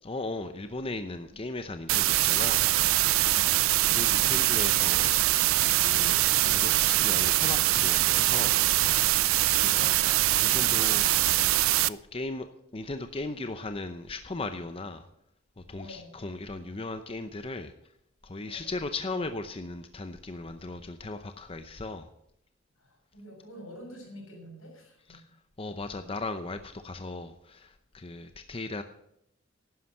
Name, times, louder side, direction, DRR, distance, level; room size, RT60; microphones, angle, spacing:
voice 1, 0.0-2.7 3.1-3.3 3.9-5.3 5.7-8.7 9.5-10.0 10.4-11.1 11.9-12.5 12.7-15.1 15.6-17.7 18.2-22.1 25.1-25.2 25.6-28.8, left 2 dB, 30° left, 0.7 m, -37 dB
sound 1, 1.9-11.9, right 16 dB, 85° right, 0.4 m, -23 dB
voice 2, 3.3-3.8 9.6-10.2 15.7-16.1 18.4-18.7 22.8-25.2, equal, 85° left, 6.9 m, -48 dB
11.5 x 9.8 x 7.6 m
head